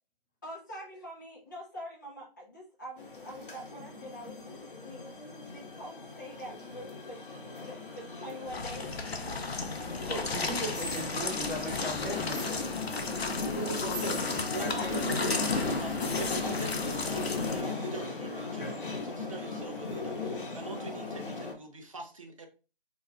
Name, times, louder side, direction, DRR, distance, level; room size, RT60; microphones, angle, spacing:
voice 1, 0.4-7.2 7.6-9.0, equal, 20° left, 0.5 m, -45 dB
sound 1, 3.0-21.5, left 3 dB, 60° left, 0.8 m, -37 dB
sound 2, 8.5-17.6, left 4 dB, 85° left, 0.6 m, -35 dB
voice 2, 10.0-12.7 13.5-15.3, right 1 dB, 5° left, 1.3 m, -38 dB
voice 3, 14.5-22.5, right 3 dB, 35° right, 0.5 m, -43 dB
2.5 x 2.3 x 3.1 m
figure-of-eight pair, 155°, 30 cm